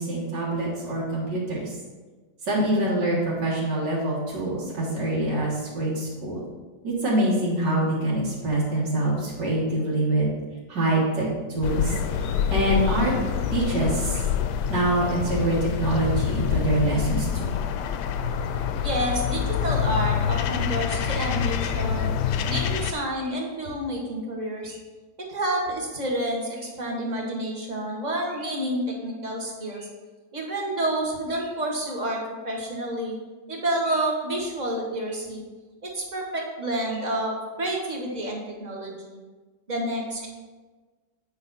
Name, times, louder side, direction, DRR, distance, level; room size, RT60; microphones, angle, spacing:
voice 1, 0.0-1.7 2.5-6.4 6.8-10.3 10.7-13.1 13.5-14.2 14.7-17.6, right 1 dB, 85° right, -6 dB, 2.3 m, -25 dB
sound 1, 11.6-22.9, left 8 dB, 80° left, 1.1 m, -26 dB
voice 2, 18.8-22.1 22.5-24.8 25.3-29.9 30.3-33.2 33.5-35.4 35.8-39.2 39.7-40.3, right 1 dB, 30° right, -1 dB, 1.2 m, -29 dB
8.5 x 4.9 x 4.1 m, 1.3 s
omnidirectional pair, 1.9 m